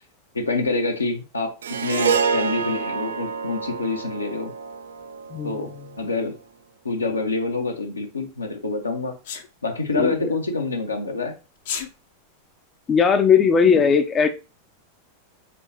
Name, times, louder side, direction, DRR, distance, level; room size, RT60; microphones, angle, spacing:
voice 1, 0.3-4.5 5.4-5.7 6.0-6.3 6.8-9.1 9.6-11.3, left 3 dB, 80° left, 3 dB, 0.9 m, -26 dB
Harp, 1.6-6.1, right 6 dB, 65° right, 0.4 m, -27 dB
Sneeze, 9.2-9.5 11.6-11.9, left 7 dB, 55° left, 0.7 m, -30 dB
voice 2, 12.9-14.3, left 6 dB, 25° left, 8 dB, 0.4 m, -18 dB
4.2 x 3.7 x 2.9 m, 0.30 s
figure-of-eight pair, 90°, 0 cm